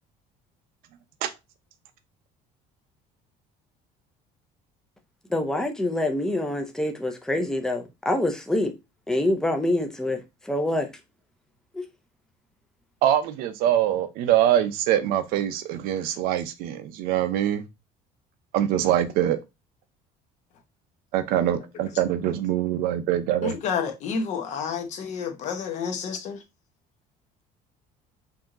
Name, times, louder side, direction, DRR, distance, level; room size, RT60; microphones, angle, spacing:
voice 1, 5.3-8.7 9.1-10.2 10.5-10.9 11.7-11.8, left 1 dB, 5° left, 0.6 m, -25 dB
voice 2, 13.0-17.6 18.5-19.4 21.1-23.5, right 11 dB, 70° right, 0.7 m, -24 dB
voice 3, 23.4-26.4, left 6 dB, 45° left, 1.1 m, -30 dB
4.8 x 2.8 x 3.7 m
cardioid pair, 170°, 16 cm